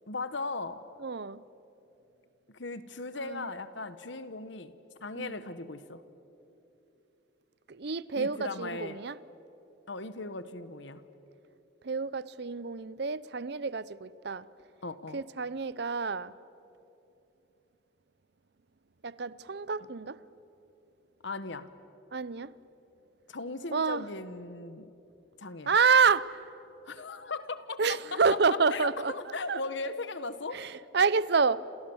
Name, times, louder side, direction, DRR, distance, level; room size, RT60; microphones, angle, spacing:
voice 1, 0.1-0.8 2.5-6.0 8.2-9.0 9.9-11.0 14.8-15.2 21.2-21.7 23.3-24.9 25.4-25.8 26.8-28.2 28.7-30.6, left 3 dB, 65° left, 1.3 m, -38 dB
voice 2, 1.0-1.4 3.2-3.5 5.2-5.4 7.7-9.2 11.8-14.5 15.1-16.3 19.0-20.2 22.1-22.5 23.7-24.1 25.7-26.4 27.8-29.1 29.5-29.6 30.5-31.7, right 5 dB, 55° right, 0.6 m, -28 dB
28.5 x 28.0 x 7.2 m
head